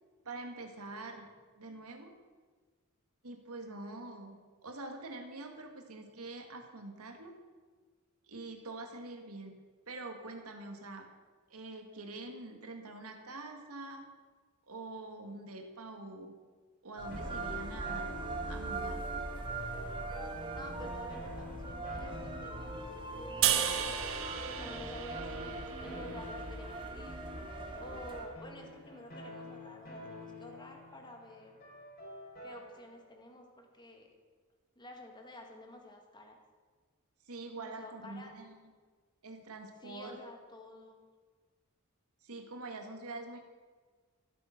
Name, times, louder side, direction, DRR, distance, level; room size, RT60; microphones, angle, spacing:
voice 1, 0.2-2.2 3.2-7.4 8.3-9.5 9.9-11.0 11.5-14.1 14.7-16.3 16.8-18.2 18.5-19.0 37.3-38.7 39.2-40.2 42.2-43.4, right 2 dB, 90° right, 4 dB, 1.8 m, -45 dB
sound 1, 17.0-28.3, right 2 dB, 25° right, 1.4 m, -40 dB
sound 2, 17.1-33.0, left 1 dB, 45° left, 3.8 m, -49 dB
voice 2, 20.5-22.8 23.1-27.2 27.7-31.6 32.4-34.1 34.7-36.4 37.5-38.3 39.8-41.0, left 1 dB, 20° left, 3 dB, 1.7 m, -50 dB
sound 3, 23.4-26.7, right 10 dB, 65° right, 0.9 m, -34 dB
12.0 x 12.0 x 5.8 m, 1.5 s
head